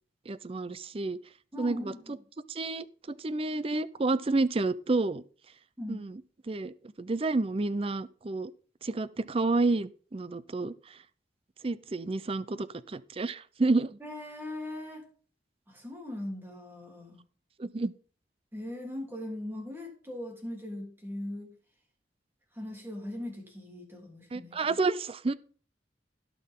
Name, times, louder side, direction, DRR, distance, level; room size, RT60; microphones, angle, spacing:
voice 1, 0.3-1.2 1.6-1.9 2.5-2.8 3.2-5.2 5.9-6.2 6.5-8.5 8.8-10.7 11.6-14.0 17.6-17.9 24.3-25.3, right 3 dB, 30° right, 0.5 m, -30 dB
voice 2, 1.5-2.2 5.8-6.1 14.0-15.0 15.7-17.2 18.5-21.5 22.5-24.8, left 1 dB, 10° right, 3.2 m, -40 dB
17.0 x 6.2 x 3.7 m
head